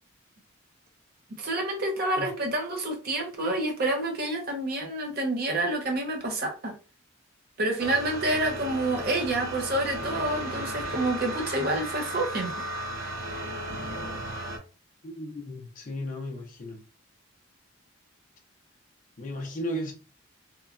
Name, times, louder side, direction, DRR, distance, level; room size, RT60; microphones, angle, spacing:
voice 1, 1.4-6.7 7.6-12.5, right 1 dB, 50° right, 0.6 m, -28 dB
sound 1, 7.8-14.6, right 1 dB, 85° right, 0.7 m, -35 dB
voice 2, 15.0-16.8 19.2-19.9, equal, 40° left, 0.5 m, -35 dB
2.9 x 2.2 x 2.4 m
head